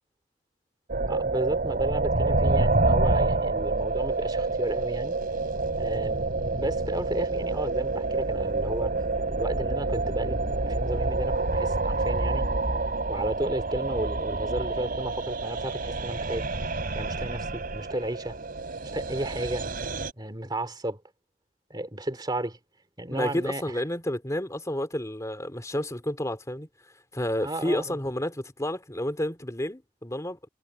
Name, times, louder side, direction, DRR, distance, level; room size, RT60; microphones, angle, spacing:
sound 1, 0.9-20.1, right 3 dB, 50° right, 3.6 m, -28 dB
voice 1, 1.1-5.2 5.8-8.9 9.3-12.5 13.1-16.7 16.9-18.4 18.9-19.7 20.2-21.0 21.7-22.6 23.0-23.8 27.4-28.0, right 1 dB, 25° right, 3.0 m, -33 dB
voice 2, 23.1-26.7 27.1-30.4, left 1 dB, 15° left, 2.7 m, -30 dB
head